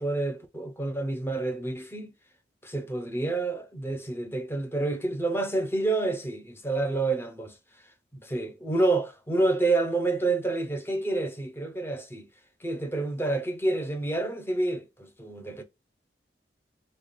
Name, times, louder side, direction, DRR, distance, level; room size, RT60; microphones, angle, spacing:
voice 1, 0.0-2.1 2.6-7.5 8.1-12.3 12.6-15.6, right 2 dB, 15° left, 0.7 m, -28 dB
3.3 x 2.1 x 3.9 m
head